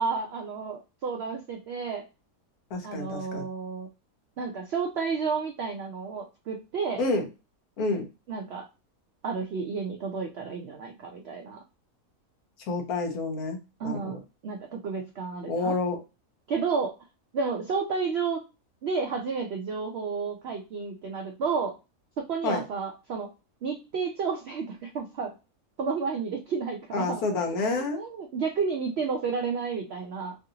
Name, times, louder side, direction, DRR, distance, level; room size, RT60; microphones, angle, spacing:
voice 1, 0.0-2.0 2.8-3.9 4.4-7.0 8.3-8.6 9.2-11.6 13.8-15.8 16.5-16.9 17.3-18.4 18.8-21.8 22.2-23.3 23.6-25.3 25.8-27.2 27.7-30.4, right 5 dB, 70° right, 2 dB, 0.6 m, -31 dB
voice 2, 2.7-3.4 7.0-7.3 7.8-8.0 12.7-14.2 15.5-16.0 22.4-22.6 26.9-28.0, left 3 dB, 75° left, 2 dB, 1.3 m, -29 dB
3.2 x 2.5 x 2.7 m, 0.28 s
omnidirectional pair, 1.6 m